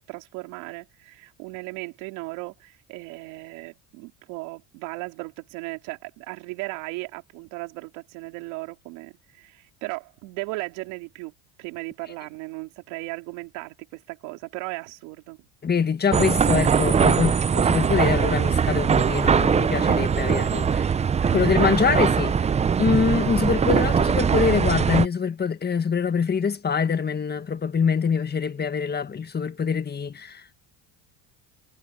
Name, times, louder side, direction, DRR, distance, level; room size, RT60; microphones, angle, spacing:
voice 1, 0.0-11.3 11.6-15.4 21.2-21.7, right 25 dB, 80° right, 3.4 m, -36 dB
voice 2, 15.6-20.9 21.3-22.4 22.8-30.6, left 6 dB, 25° left, 1.6 m, -24 dB
sound 1, 16.1-25.1, right 6 dB, 15° right, 0.5 m, -21 dB
supercardioid pair, 105°, 39 cm